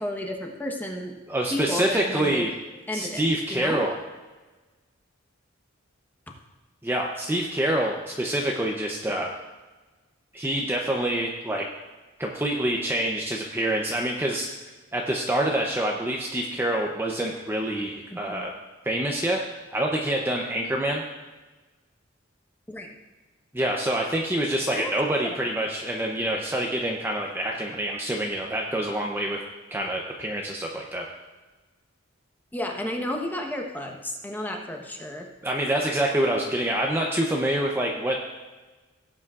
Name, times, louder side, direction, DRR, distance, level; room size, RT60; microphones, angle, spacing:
voice 1, 0.0-1.1 1.5-2.5 2.9-3.2 3.5-3.8 18.1-18.4 22.7-22.9 24.7-24.9 25.2-25.5 32.5-35.3, left 1 dB, 10° left, 1 dB, 1.1 m, -32 dB
voice 2, 1.3-2.5 2.9-3.9 6.8-9.3 10.3-11.7 12.2-14.5 14.9-18.5 18.8-19.4 19.7-21.0 23.5-29.4 29.7-31.0 35.4-38.2, right 1 dB, 10° right, 0 dB, 0.7 m, -26 dB
16.5 x 8.3 x 2.5 m, 1.2 s
head